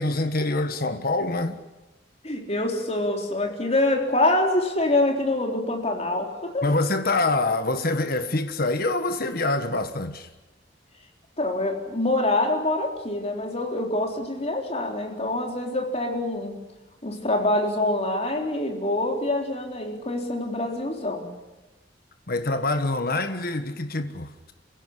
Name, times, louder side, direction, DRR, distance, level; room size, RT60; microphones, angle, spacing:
voice 1, 0.0-1.6 6.6-10.3 22.3-24.5, left 2 dB, 55° left, 1.5 m, -25 dB
voice 2, 2.2-6.7 11.4-16.6 17.0-21.3, left 2 dB, 35° left, 3.9 m, -25 dB
28.0 x 16.5 x 10.0 m
head